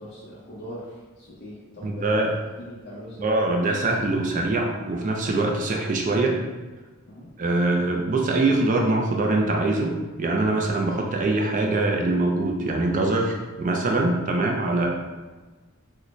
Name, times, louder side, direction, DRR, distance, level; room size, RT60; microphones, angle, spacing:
voice 1, 0.0-3.3 7.1-7.3, equal, 45° left, -7 dB, 0.7 m, -41 dB
voice 2, 1.8-2.3 3.2-6.3 7.4-9.9 10.2-14.9, right 2 dB, 35° right, 1 dB, 0.3 m, -23 dB
3.9 x 2.1 x 3.0 m, 1.3 s
head